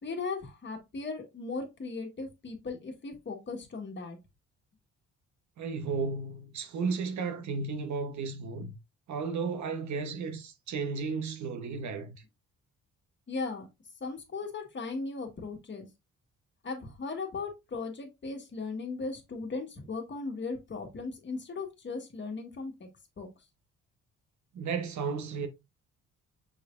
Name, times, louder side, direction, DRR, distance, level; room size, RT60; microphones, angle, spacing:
voice 1, 0.0-4.2 13.3-13.7 14.0-15.9 16.6-22.9 23.2-23.3, left 4 dB, 40° left, 1.5 m, -37 dB
voice 2, 5.6-8.7 9.1-12.2 24.5-25.5, right 5 dB, 70° right, 1.0 m, -34 dB
6.3 x 3.3 x 2.5 m
cardioid pair, 90°, 30 cm